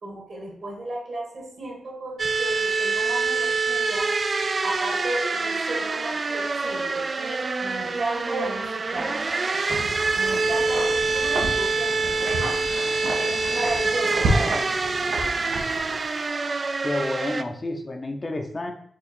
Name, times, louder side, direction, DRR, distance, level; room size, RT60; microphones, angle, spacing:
voice 1, 0.0-4.1 4.6-12.5 12.8-14.7 15.7-15.8, right 2 dB, 65° right, -1 dB, 1.7 m, -34 dB
sound 1, 2.2-17.4, right 3 dB, 50° right, 0.3 m, -26 dB
Wind, 9.7-16.2, right 1 dB, 85° right, 0.8 m, -31 dB
voice 2, 16.8-18.7, left 2 dB, 40° left, 3 dB, 0.7 m, -29 dB
4.6 x 2.5 x 4.2 m, 0.69 s
cardioid pair, 55°, 0 cm